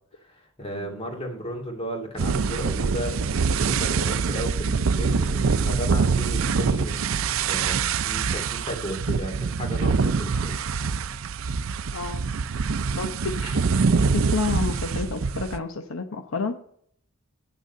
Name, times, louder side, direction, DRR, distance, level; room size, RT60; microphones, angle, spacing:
voice 1, 0.2-10.6, equal, 30° left, 1 dB, 2.2 m, -34 dB
sound 1, 2.2-15.6, right 5 dB, 85° right, 0.5 m, -24 dB
voice 2, 11.9-12.2 12.9-16.6, left 4 dB, 85° left, 7 dB, 0.9 m, -30 dB
10.0 x 6.5 x 5.4 m, 0.64 s
head